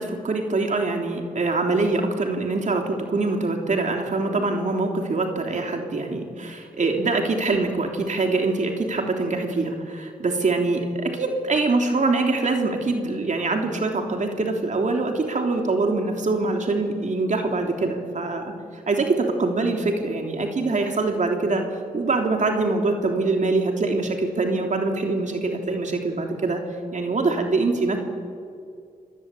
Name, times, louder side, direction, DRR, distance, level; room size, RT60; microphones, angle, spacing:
voice 1, 0.0-21.7 21.9-26.6 26.9-28.0, right 3 dB, 55° right, 3 dB, 3.2 m, -24 dB
27.0 x 21.0 x 8.4 m, 2.3 s
cardioid pair, 70°, 15 cm